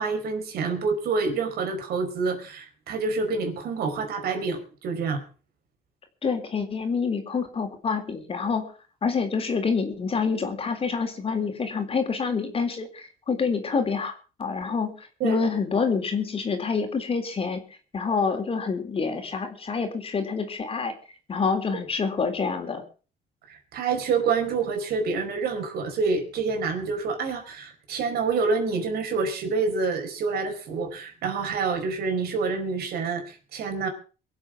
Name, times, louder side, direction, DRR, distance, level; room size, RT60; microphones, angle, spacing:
voice 1, 0.0-5.2 15.2-15.4 23.5-33.9, right 4 dB, 65° right, 5 dB, 4.7 m, -27 dB
voice 2, 6.2-8.7 9.0-17.6 17.9-20.9 21.3-22.8, left 5 dB, 35° left, 5 dB, 3.6 m, -27 dB
23.0 x 7.9 x 6.1 m, 0.37 s
cardioid pair, 110°, 17 cm